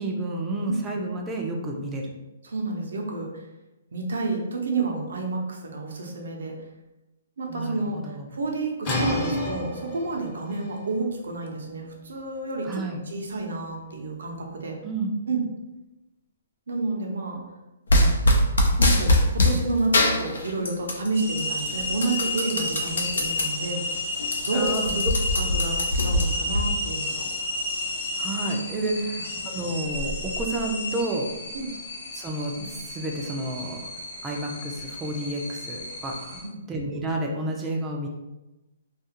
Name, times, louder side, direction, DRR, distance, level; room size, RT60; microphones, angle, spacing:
voice 1, 0.0-2.1 7.5-8.3 12.6-13.0 14.8-15.1 24.5-25.1 28.2-31.3 32.1-33.8 34.2-38.1, right 2 dB, 15° right, 0 dB, 0.4 m, -30 dB
voice 2, 2.4-3.4 3.9-6.5 7.4-8.0 8.3-14.8 15.3-15.5 16.7-17.4 18.8-23.8 24.4-25.0 25.3-27.2 31.5-31.7 36.4-36.6, right 3 dB, 75° right, 1 dB, 0.6 m, -30 dB
sound 1, 8.8-14.5, left 1 dB, 30° left, 0.7 m, -32 dB
sound 2, 17.9-19.6 19.9-21.1 21.4-23.5 23.9-24.0 24.2-26.6, left 1 dB, 85° left, 0.5 m, -21 dB
sound 3, 21.1-36.4, left 2 dB, 70° left, 0.9 m, -32 dB
2.4 x 2.4 x 2.9 m, 1.0 s
hypercardioid pair, 145°, 0 cm